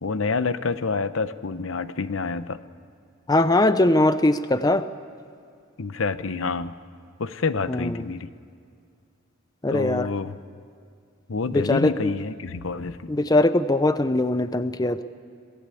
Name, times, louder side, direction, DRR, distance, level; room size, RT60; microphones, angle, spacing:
voice 1, 0.0-2.6 5.8-6.8 7.2-8.3 9.7-10.4 11.3-13.1, left 4 dB, 70° left, 13 dB, 0.8 m, -28 dB
voice 2, 3.3-4.8 7.7-7.9 9.6-10.1 11.5-12.1 13.1-15.0, left 2 dB, 20° left, 12 dB, 0.6 m, -21 dB
26.5 x 18.0 x 8.4 m, 2.3 s
head